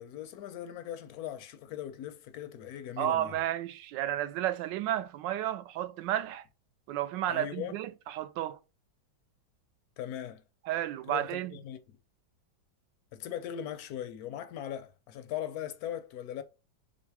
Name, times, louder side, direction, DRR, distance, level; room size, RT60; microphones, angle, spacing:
voice 1, 0.0-3.4 7.3-7.8 10.0-10.4 11.1-11.8 13.1-16.4, left 10 dB, 70° left, 0.9 m, -39 dB
voice 2, 3.0-6.4 6.9-8.6 10.6-11.6, right 12 dB, 80° right, 1.2 m, -32 dB
3.6 x 3.2 x 4.6 m
omnidirectional pair, 2.0 m